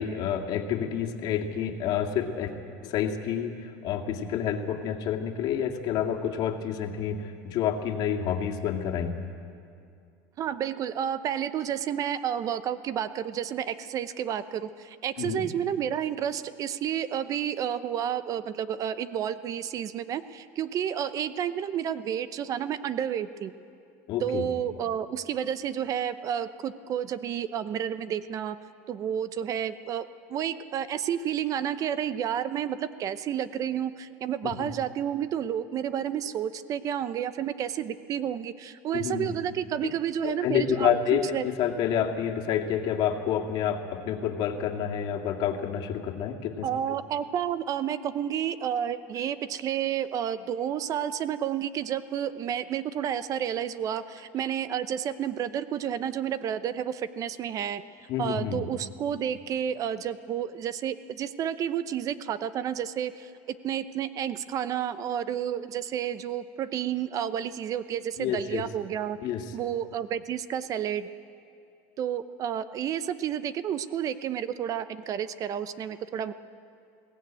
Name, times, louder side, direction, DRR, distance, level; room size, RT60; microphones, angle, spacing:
voice 1, 0.0-2.5 2.8-9.2 15.2-15.5 24.1-24.5 34.4-34.7 38.9-39.4 39.8-39.9 40.2-46.7 58.1-58.6 68.2-68.6 69.2-69.4, left 9 dB, 55° left, 3 dB, 2.2 m, -29 dB
voice 2, 10.4-23.5 24.2-28.6 28.9-41.5 46.6-57.8 58.2-63.3 63.6-69.2 69.5-71.1 72.0-76.3, right 9 dB, 40° right, 14 dB, 0.8 m, -30 dB
22.0 x 17.0 x 9.1 m, 2.5 s
supercardioid pair, 125°, 9 cm